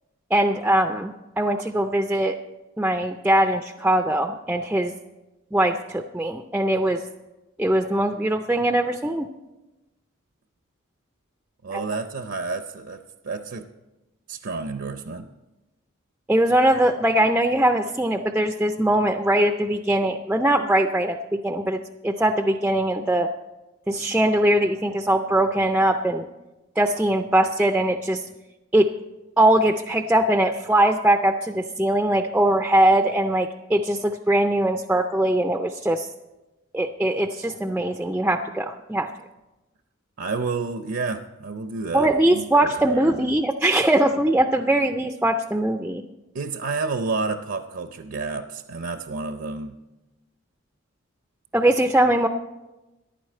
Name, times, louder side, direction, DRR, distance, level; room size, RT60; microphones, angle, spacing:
voice 1, 0.3-2.3 2.8-4.9 5.5-7.0 7.6-9.3 11.7-11.8 16.3-23.3 23.9-26.2 26.8-28.2 28.7-28.9 29.4-36.1 36.7-39.1 41.9-46.0 51.5-52.3, right 1 dB, 5° right, 6 dB, 0.3 m, -21 dB
voice 2, 11.6-13.7 14.3-15.3 40.2-43.3 46.3-49.7, right 4 dB, 60° right, 8 dB, 0.6 m, -30 dB
14.5 x 11.0 x 4.4 m, 1.0 s
head